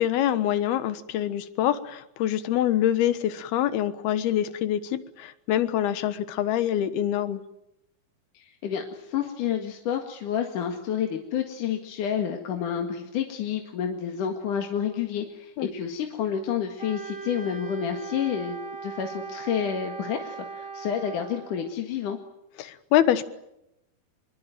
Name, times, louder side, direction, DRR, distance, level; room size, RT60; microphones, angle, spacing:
voice 1, 0.0-7.4 15.6-15.7 22.6-23.2, left 11 dB, 85° left, 13 dB, 3.3 m, -25 dB
voice 2, 8.3-22.2, left 8 dB, 60° left, 4 dB, 3.2 m, -29 dB
Wind instrument woodwind instrument, 16.8-21.6, right 4 dB, 60° right, 5.5 m, -39 dB
26.0 x 22.5 x 9.1 m, 0.84 s
omnidirectional pair, 4.3 m